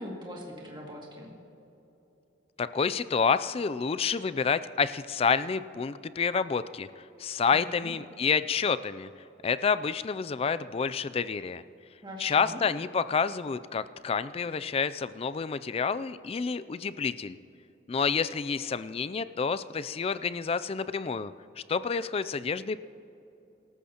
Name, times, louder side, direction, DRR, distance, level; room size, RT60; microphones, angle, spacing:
voice 1, 0.0-1.3 7.5-7.9 12.0-12.6, equal, 25° right, -2 dB, 2.2 m, -41 dB
voice 2, 2.6-9.1 9.4-11.6 12.2-17.4 17.9-21.3 21.7-22.8, left 5 dB, 35° left, 14 dB, 0.3 m, -29 dB
24.5 x 13.5 x 2.9 m, 2.9 s
head